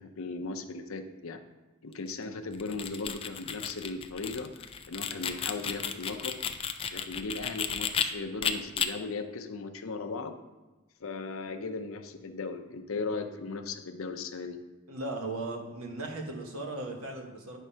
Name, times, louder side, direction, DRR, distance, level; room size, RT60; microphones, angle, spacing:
voice 1, 0.0-1.4 1.8-4.5 4.9-6.4 6.9-10.4 11.0-14.6, left 3 dB, 70° left, 5 dB, 0.6 m, -37 dB
sound 1, 2.5-8.0 8.4-8.9, left 8 dB, 25° left, 0.3 m, -33 dB
voice 2, 14.9-17.6, right 2 dB, 80° right, 2 dB, 1.2 m, -37 dB
9.1 x 3.7 x 5.5 m, 1.2 s
head